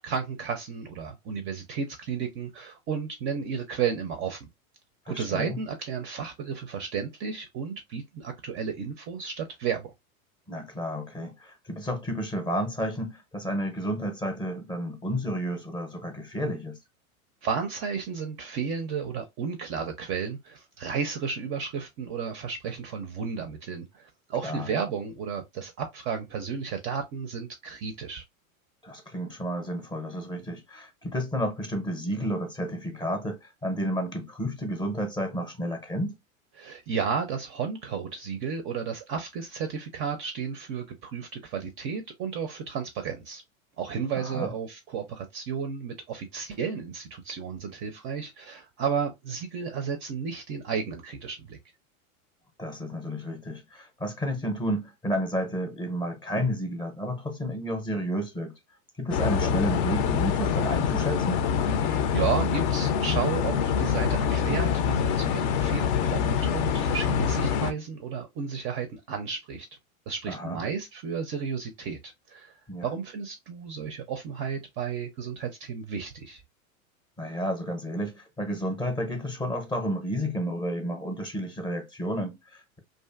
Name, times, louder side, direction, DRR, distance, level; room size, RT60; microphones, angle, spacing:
voice 1, 0.0-4.4 5.1-9.9 17.4-28.2 36.6-43.4 43.8-51.6 61.8-69.7 70.1-72.5 72.8-76.4, right 6 dB, 30° right, 0.4 m, -33 dB
voice 2, 5.1-5.6 10.5-16.8 24.4-24.9 28.8-36.1 44.1-44.5 52.6-58.5 59.0-61.4 70.3-70.6 72.7-72.9 77.2-82.8, equal, 10° left, 0.6 m, -31 dB
sound 1, 59.1-67.7, left 7 dB, 50° left, 0.5 m, -25 dB
2.5 x 2.5 x 2.3 m
hypercardioid pair, 110°, 43 cm